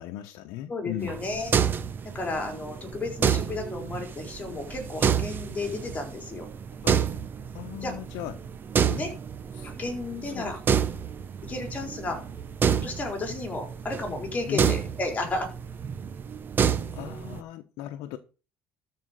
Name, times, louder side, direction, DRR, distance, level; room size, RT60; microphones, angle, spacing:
voice 1, 0.0-1.2 6.8-7.1 7.5-8.5 8.9-9.0 9.5-9.7 10.2-10.8 14.5-14.8 16.9-18.2, left 13 dB, 75° left, 1.1 m, -37 dB
voice 2, 0.7-1.5 2.1-6.5 7.8-7.9 8.9-9.1 9.6-10.6 11.4-12.2 12.7-15.5, left 2 dB, 25° left, 4.3 m, -33 dB
sound 1, 1.0-17.4, right 7 dB, 30° right, 1.0 m, -29 dB
13.0 x 5.2 x 6.6 m
cardioid pair, 130°, 6 cm